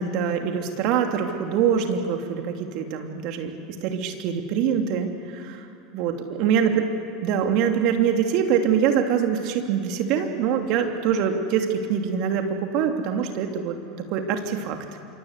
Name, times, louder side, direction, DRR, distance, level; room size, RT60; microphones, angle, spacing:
voice 1, 0.0-3.5 3.8-5.6 5.9-6.9 7.2-13.8 14.1-14.8, right 7 dB, 55° right, 4 dB, 3.0 m, -24 dB
27.0 x 24.5 x 8.3 m, 2.7 s
hypercardioid pair, 80°, 0 cm